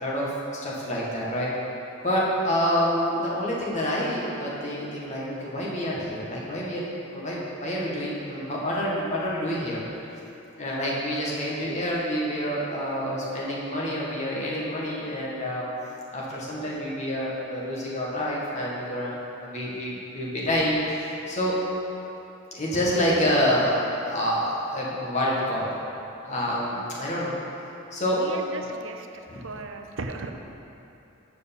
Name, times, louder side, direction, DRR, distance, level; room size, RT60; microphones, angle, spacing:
voice 1, 0.0-0.3 0.6-1.5 2.0-6.8 7.1-9.8 10.6-15.7 16.1-21.6 22.5-25.8 26.2-27.4 27.9-28.3 29.3-29.4, equal, 35° left, -6 dB, 1.7 m, -27 dB
voice 2, 28.1-29.1 29.3-30.3, right 3 dB, 70° right, 5 dB, 0.6 m, -36 dB
6.7 x 6.5 x 7.1 m, 2.9 s
head